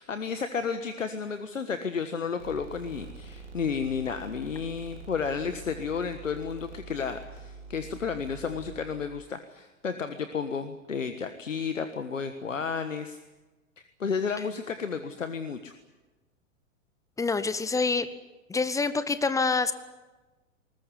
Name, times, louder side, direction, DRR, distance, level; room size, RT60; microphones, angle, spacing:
voice 1, 0.0-13.2 13.8-15.7, left 6 dB, 75° left, 9 dB, 1.5 m, -32 dB
sound 1, 2.4-9.2, right 4 dB, 70° right, 4.1 m, -45 dB
voice 2, 17.2-18.1 18.5-19.7, left 4 dB, 10° left, 13 dB, 0.9 m, -26 dB
21.0 x 19.5 x 9.7 m, 1.2 s
figure-of-eight pair, 100°, 39 cm